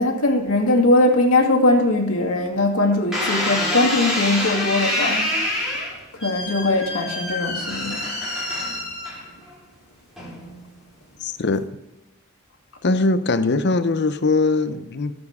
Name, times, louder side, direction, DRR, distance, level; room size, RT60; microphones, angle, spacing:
voice 1, 0.0-5.3 6.1-8.1, left 2 dB, 90° left, 2.1 m, -20 dB
sound 1, 3.1-9.5 10.2-10.6, left 1 dB, 5° right, 4.2 m, -26 dB
voice 2, 11.2-11.7 12.8-15.2, left 3 dB, 50° left, 0.7 m, -21 dB
19.5 x 7.1 x 3.6 m
head